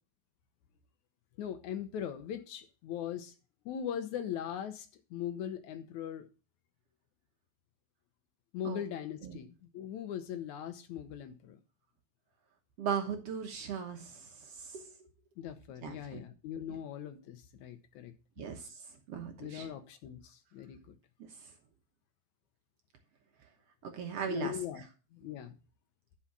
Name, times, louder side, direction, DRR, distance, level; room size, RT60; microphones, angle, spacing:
voice 1, 1.4-3.3 3.7-6.3 8.5-11.6 15.4-18.1 19.4-21.0 24.3-24.8 25.1-25.6, left 9 dB, 75° left, 2.2 m, -40 dB
voice 2, 12.8-14.3 14.6-14.8 15.8-16.2 18.4-18.7 19.1-19.7 23.8-24.5, right 7 dB, 60° right, 2.0 m, -37 dB
11.5 x 5.6 x 6.1 m
omnidirectional pair, 3.4 m